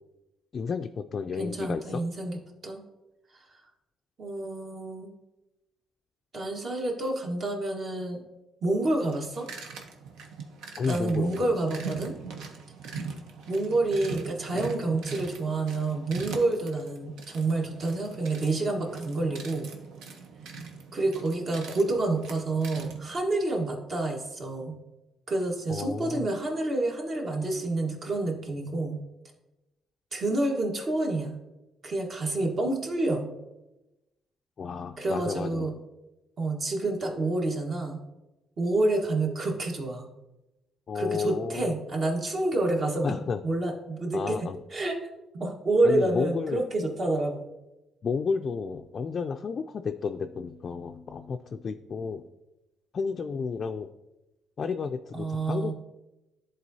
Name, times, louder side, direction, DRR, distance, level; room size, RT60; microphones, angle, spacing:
voice 1, 0.5-2.0 10.8-11.4 25.7-26.3 34.6-35.8 40.9-41.8 43.0-43.4 44.1-44.6 45.8-46.6 48.0-52.2 52.9-53.9 54.6-55.7, left 5 dB, 50° left, 5 dB, 0.3 m, -32 dB
voice 2, 1.4-2.4 2.6-2.8 3.3-3.4 4.2-5.1 6.3-8.2 8.6-9.5 10.9-12.1 13.5-19.7 20.9-24.8 25.3-29.0 30.1-31.4 31.8-33.3 35.0-35.7 36.4-38.0 38.6-40.1 40.9-43.1 43.4-44.4 44.7-45.0 45.3-47.5 55.1-55.7, right 2 dB, 50° right, 1 dB, 1.3 m, -28 dB
sound 1, 8.8-23.1, right 5 dB, 85° right, 0.8 m, -41 dB
11.0 x 3.8 x 2.7 m, 1.0 s
cardioid pair, 90°, 0 cm